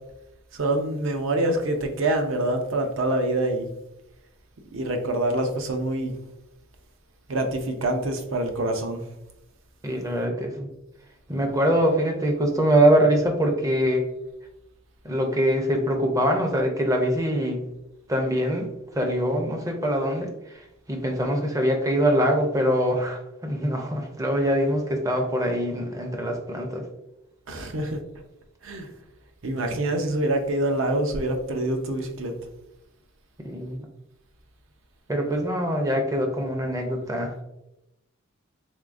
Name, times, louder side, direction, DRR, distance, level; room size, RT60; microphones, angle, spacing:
voice 1, 0.5-3.7 4.7-6.1 7.3-9.0 27.5-28.0 28.6-28.9 29.4-32.3, right 1 dB, 65° right, 5 dB, 0.6 m, -25 dB
voice 2, 9.8-10.7 11.3-14.1 15.0-17.6 18.1-18.7 18.9-26.8 33.4-33.9 35.1-37.3, equal, 15° right, 3 dB, 0.5 m, -23 dB
3.6 x 3.4 x 2.5 m, 0.88 s
head